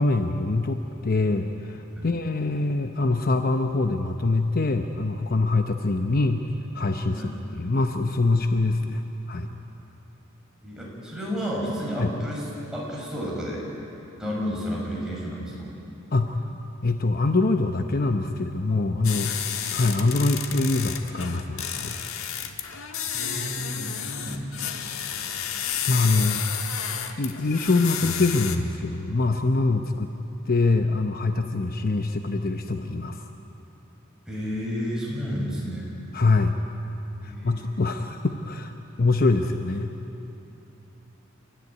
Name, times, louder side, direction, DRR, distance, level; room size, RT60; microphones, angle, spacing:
voice 1, 0.0-6.4 6.7-9.5 12.0-12.1 16.1-16.5 16.8-19.3 19.7-22.0 25.8-26.6 27.2-30.1 30.5-33.2 36.1-36.6 37.2-38.7 39.0-39.9, left 3 dB, 45° left, 6 dB, 0.8 m, -24 dB
voice 2, 10.6-12.4 12.7-13.6 14.2-15.7 19.2-19.4 22.7-24.6 34.3-35.9 37.2-37.7, equal, 5° right, -5 dB, 6.3 m, -32 dB
sound 1, 19.0-28.6, left 8 dB, 85° left, 1.5 m, -31 dB
29.5 x 14.0 x 9.6 m, 3.0 s
head